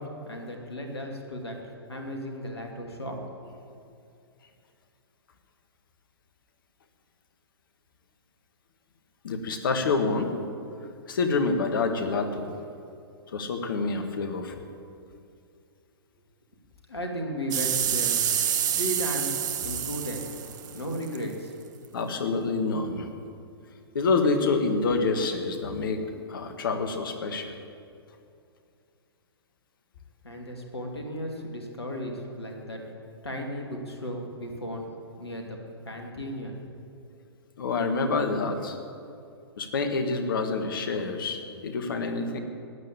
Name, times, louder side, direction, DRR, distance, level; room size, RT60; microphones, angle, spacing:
voice 1, 0.0-1.6 1.9-3.5 16.9-18.2 18.7-20.3 20.7-21.7 30.2-32.8 33.2-34.8 35.2-35.6 35.8-36.6, equal, 75° left, 2 dB, 2.7 m, -35 dB
voice 2, 9.2-10.3 11.1-12.5 13.3-14.5 21.9-23.1 23.9-27.5 37.6-38.8 39.6-42.4, left 4 dB, 55° left, 6 dB, 1.9 m, -27 dB
sound 1, 17.5-21.2 21.8-21.9, right 9 dB, 45° right, 1.0 m, -28 dB
16.5 x 9.4 x 8.8 m, 2.5 s
figure-of-eight pair, 115°, 13 cm